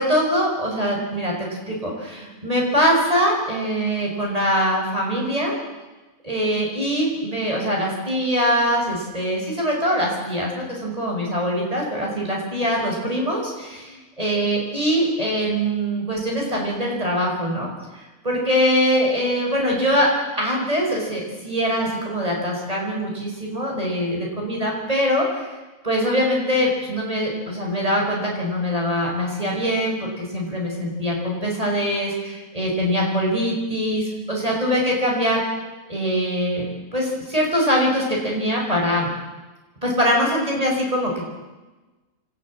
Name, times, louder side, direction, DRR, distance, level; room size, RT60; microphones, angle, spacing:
voice 1, 0.0-1.3 1.7-5.5 6.2-20.1 20.3-25.5 25.8-35.4 35.9-39.1 39.8-41.2, equal, 25° right, -2 dB, 5.9 m, -23 dB
27.5 x 14.0 x 7.6 m, 1.2 s
omnidirectional pair, 1.5 m